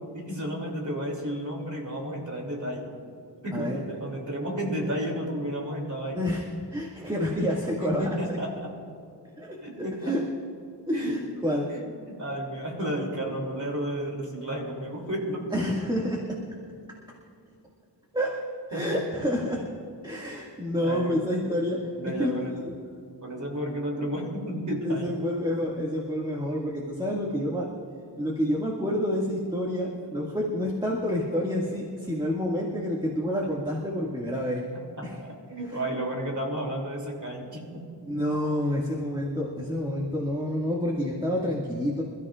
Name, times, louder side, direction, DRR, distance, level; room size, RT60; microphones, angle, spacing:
voice 1, 0.1-2.9 3.4-6.2 7.8-8.7 9.6-10.1 10.9-11.2 11.7-11.8 12.1-15.5 18.7-19.0 20.8-21.2 22.0-22.5 23.2-25.2 35.0-35.1 35.5-37.6 38.1-38.2, right 1 dB, 45° right, -1 dB, 2.9 m, -32 dB
voice 2, 6.1-8.4 9.4-10.2 10.9-11.7 15.5-16.4 18.1-18.4 18.7-19.6 20.0-21.8 22.2-22.7 24.8-27.7 28.2-34.7 35.0-35.2 35.7-35.8 38.1-42.0, equal, 10° right, -4 dB, 2.0 m, -28 dB
27.5 x 13.5 x 2.5 m, 2.5 s
wide cardioid pair, 100°, 42 cm